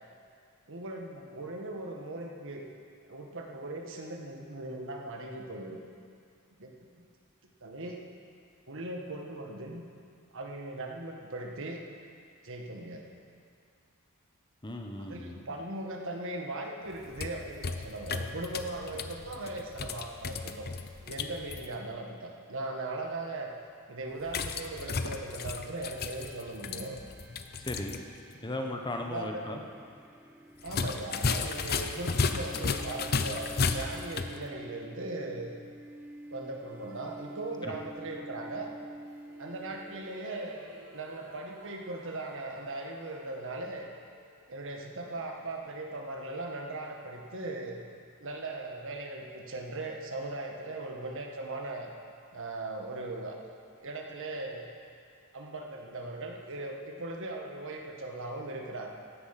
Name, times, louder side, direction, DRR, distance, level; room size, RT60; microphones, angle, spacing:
voice 1, 0.7-2.7 3.1-5.8 6.6-7.0 7.6-8.0 8.7-9.8 10.3-11.8 12.4-13.1 15.1-20.7 21.0-23.5 23.9-27.0 29.1-29.4 30.6-35.6 36.3-38.7 39.4-43.9 44.5-47.8 48.2-51.9 52.3-53.4 53.8-54.7 55.3-58.9, right 2 dB, 65° right, 1 dB, 1.6 m, -39 dB
voice 2, 14.6-15.4 27.6-28.0 28.4-29.7 37.6-37.7, left 1 dB, 20° left, 3 dB, 1.0 m, -36 dB
sound 1, 16.9-21.7 24.3-28.0 28.3-28.4 30.6-34.4, left 4 dB, 45° left, 0.7 m, -34 dB
sound 2, 25.7-40.2, right 1 dB, 5° right, 0.4 m, -49 dB
sound 3, 36.6-38.3 39.0-45.1, right 1 dB, 80° right, 1.9 m, -56 dB
15.5 x 10.5 x 5.9 m, 2.3 s
head